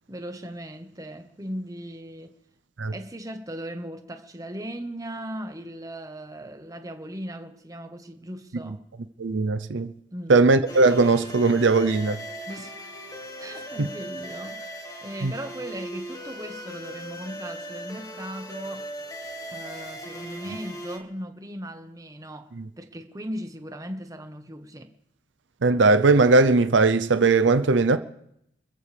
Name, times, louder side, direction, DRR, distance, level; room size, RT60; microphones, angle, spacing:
voice 1, 0.1-2.3 2.9-8.8 10.1-10.3 12.5-12.8 13.4-18.9 19.5-22.5 22.8-24.9, right 1 dB, 20° right, 1.2 m, -38 dB
voice 2, 9.2-9.9 10.3-12.2 13.8-13.9 15.2-15.3 22.6-22.7 25.6-28.0, right 3 dB, 85° right, 0.7 m, -19 dB
sound 1, 10.7-21.0, equal, 20° left, 1.8 m, -38 dB
28.5 x 14.0 x 3.4 m
head